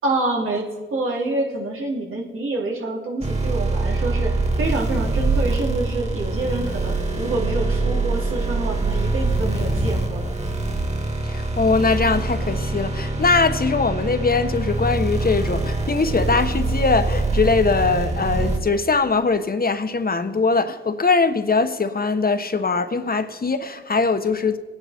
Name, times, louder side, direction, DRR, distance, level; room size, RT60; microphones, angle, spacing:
voice 1, 0.0-10.2, right 2 dB, 85° right, 3.5 m, -27 dB
sound 1, 3.2-18.6, right 2 dB, 35° right, 2.6 m, -24 dB
voice 2, 11.2-24.6, left 4 dB, 45° left, 1.3 m, -21 dB
24.0 x 9.8 x 4.5 m
cardioid pair, 50°, 21 cm